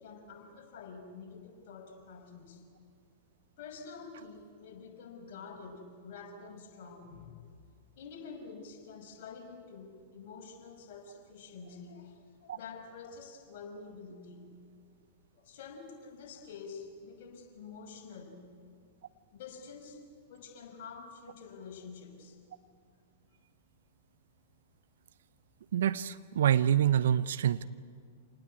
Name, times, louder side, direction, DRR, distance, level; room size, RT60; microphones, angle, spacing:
voice 1, 0.0-2.6 3.6-7.5 8.0-14.5 15.4-18.5 19.3-20.0 20.3-22.4, left 5 dB, 50° left, 2 dB, 5.7 m, -48 dB
voice 2, 25.7-27.6, right 10 dB, 60° right, 16 dB, 0.7 m, -26 dB
28.0 x 19.5 x 8.6 m, 2.2 s
figure-of-eight pair, 100°, 0 cm